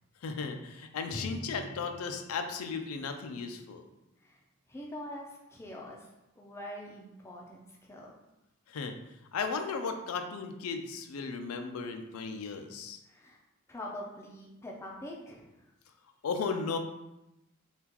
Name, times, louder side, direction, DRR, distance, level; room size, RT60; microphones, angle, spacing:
voice 1, 0.2-3.8 8.7-9.0 9.3-13.0 16.2-16.8, left 5 dB, 90° left, 6 dB, 0.4 m, -35 dB
Drum, 1.1-4.6, left 1 dB, 75° right, 1.2 m, -46 dB
voice 2, 4.7-6.1 6.4-8.1 13.0-13.4 13.7-15.7, left 1 dB, 10° left, -2 dB, 0.4 m, -44 dB
3.6 x 2.3 x 2.9 m, 0.92 s
head